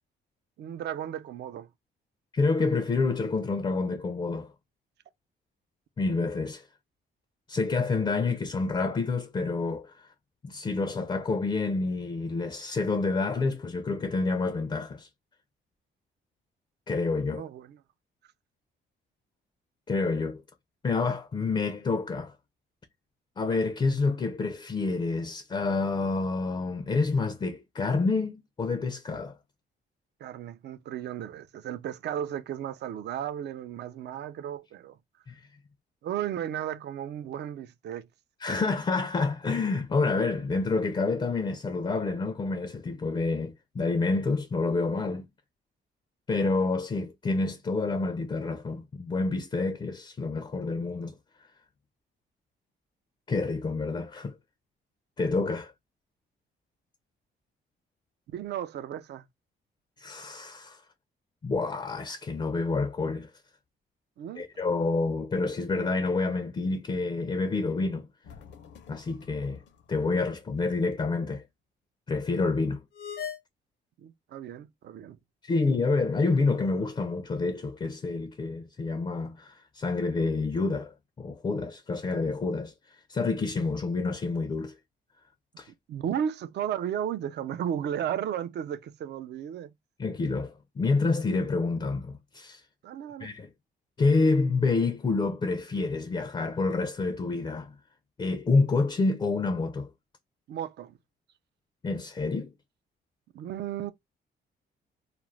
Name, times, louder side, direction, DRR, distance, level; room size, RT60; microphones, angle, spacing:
voice 1, 0.6-1.7 17.3-17.8 30.2-35.0 36.0-38.1 58.3-59.2 64.2-64.5 74.0-75.2 85.9-89.7 92.8-93.3 100.5-100.9 103.3-103.9, right 10 dB, 60° right, 0.4 m, -34 dB
voice 2, 2.3-4.5 6.0-6.7 7.5-9.9 10.4-15.1 16.9-17.4 19.9-20.4 20.8-22.3 23.4-29.3 35.3-35.4 38.4-45.3 46.3-51.1 53.3-54.4 55.2-55.7 60.0-60.8 61.4-63.3 64.4-68.1 68.9-69.6 69.9-71.4 72.1-72.8 75.4-84.7 85.6-85.7 90.0-92.6 93.2-93.5 94.0-97.8 98.2-99.9 101.8-102.5, left 3 dB, 25° left, 0.4 m, -28 dB
sound 1, 68.2-69.9 70.2-70.3 72.9-73.4, left 7 dB, 65° left, 0.6 m, -41 dB
2.4 x 2.0 x 3.0 m
cardioid pair, 90°, 20 cm